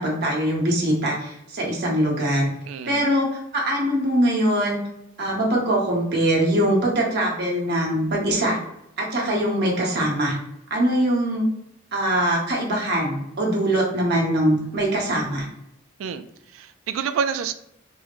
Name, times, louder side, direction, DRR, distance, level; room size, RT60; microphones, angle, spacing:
voice 1, 0.0-2.5 2.9-4.8 5.2-8.6 9.0-10.4 10.7-11.4 11.9-15.5, right 1 dB, 55° right, -2 dB, 1.0 m, -22 dB
voice 2, 2.7-3.0 16.0-16.2 16.5-17.5, right 7 dB, 80° right, 10 dB, 0.3 m, -28 dB
3.5 x 2.1 x 3.0 m, 0.80 s
head